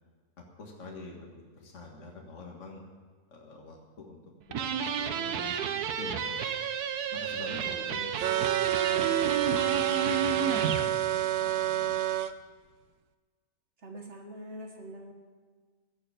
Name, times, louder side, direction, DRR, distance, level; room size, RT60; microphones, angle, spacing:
voice 1, 0.4-1.3 1.5-2.8 3.3-4.2 4.5-6.4 7.1-8.1 8.9-12.0, left 3 dB, 50° left, 0 dB, 1.9 m, -46 dB
sound 1, 4.5-10.9, right 7 dB, 85° right, 1.4 m, -31 dB
sound 2, 8.2-12.3, right 13 dB, 65° right, 0.8 m, -28 dB
voice 2, 13.8-15.1, right 1 dB, 50° right, 2 dB, 1.6 m, -44 dB
16.0 x 6.8 x 8.7 m, 1.5 s
omnidirectional pair, 1.6 m